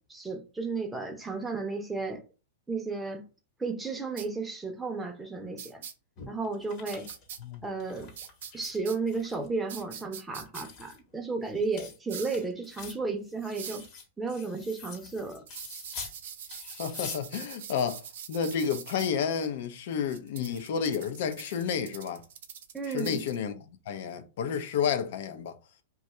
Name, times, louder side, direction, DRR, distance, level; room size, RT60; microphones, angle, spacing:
voice 1, 0.0-2.2 2.7-3.2 3.6-5.8 6.3-7.1 7.6-8.1 8.5-13.8 14.2-15.5 22.7-23.2, right 4 dB, 5° right, 0.6 m, -33 dB
sound 1, 4.2-4.3 5.6-5.9 6.9-7.4 8.2-9.0 9.7-10.6 12.1-12.4 13.5-13.9 15.5-19.1 20.1-23.4, right 8 dB, 70° right, 0.6 m, -43 dB
sound 2, 6.2-8.8 9.1-9.9 10.3-16.2 16.5-17.2, left 5 dB, 40° left, 1.0 m, -46 dB
voice 2, 16.8-18.0 18.3-22.2 22.9-25.5, left 7 dB, 65° left, 0.5 m, -31 dB
2.6 x 2.3 x 4.1 m
hypercardioid pair, 135°, 0 cm